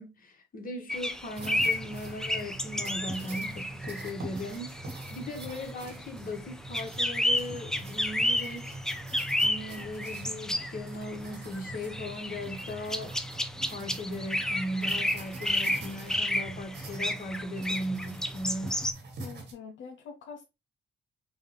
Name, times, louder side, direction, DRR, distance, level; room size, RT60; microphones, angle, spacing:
voice 1, 0.0-8.8 9.4-13.2 13.7-18.8, left 1 dB, 45° left, 1.4 m, -38 dB
sound 1, 0.9-18.9, left 1 dB, 5° left, 0.5 m, -32 dB
sound 2, 1.4-19.5, right 2 dB, 60° right, 1.6 m, -43 dB
voice 2, 19.2-20.5, left 6 dB, 75° left, 0.7 m, -44 dB
5.9 x 2.4 x 3.1 m
cardioid pair, 90°, 20 cm